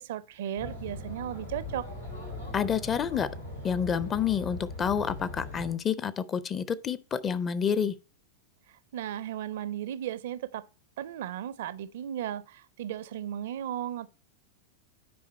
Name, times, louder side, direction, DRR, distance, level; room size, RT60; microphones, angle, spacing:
voice 1, 0.0-1.9 8.9-10.6 11.0-14.1, right 11 dB, 55° right, 0.4 m, -35 dB
Chatter, 0.6-5.7, left 2 dB, 85° left, 4.1 m, -40 dB
voice 2, 2.5-3.3 3.6-7.9, left 7 dB, 25° left, 0.5 m, -29 dB
9.4 x 5.0 x 4.2 m
figure-of-eight pair, 90°, 0 cm